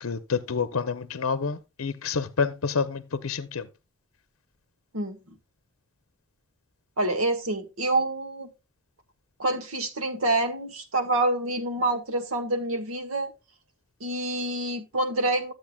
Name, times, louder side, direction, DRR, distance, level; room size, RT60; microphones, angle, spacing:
voice 1, 0.0-3.7, left 5 dB, 85° left, 0.7 m, -28 dB
voice 2, 4.9-5.3 7.0-8.5 9.4-13.3 14.0-15.5, right 2 dB, 80° right, 1.6 m, -27 dB
12.0 x 7.9 x 2.3 m
head